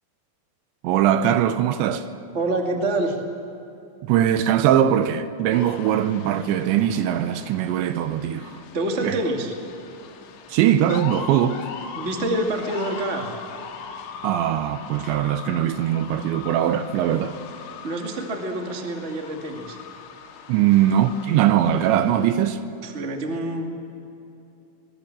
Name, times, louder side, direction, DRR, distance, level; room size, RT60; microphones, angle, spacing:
voice 1, 0.8-2.1 4.1-8.6 9.0-9.2 10.5-11.6 14.2-17.4 20.5-22.6, right 10 dB, 80° right, 2.8 m, -21 dB
voice 2, 2.3-3.2 8.3-8.4 8.7-9.5 11.9-13.3 17.8-19.8 22.8-23.7, right 2 dB, 55° right, 0.7 m, -26 dB
sound 1, 5.5-22.5, left 6 dB, 80° left, 4.2 m, -40 dB
25.0 x 21.5 x 7.6 m
omnidirectional pair, 5.6 m